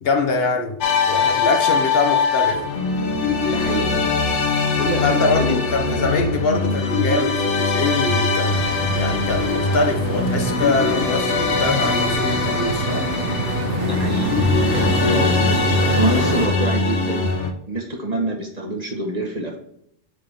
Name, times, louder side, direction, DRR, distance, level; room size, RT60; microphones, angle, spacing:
voice 1, 0.0-0.8 1.1-2.6 5.0-8.6 8.9-13.1, left 3 dB, 60° left, 4 dB, 1.0 m, -23 dB
sound 1, 0.8-17.5, left 4 dB, 85° left, 1.2 m, -21 dB
voice 2, 3.5-4.0 4.8-5.6 5.9-6.1 13.8-14.3 14.7-17.4 17.7-19.6, right 1 dB, 40° right, 1 dB, 1.1 m, -26 dB
sound 2, 8.5-16.5, right 2 dB, 60° right, 1.4 m, -26 dB
7.9 x 3.9 x 3.4 m, 0.73 s
omnidirectional pair, 1.2 m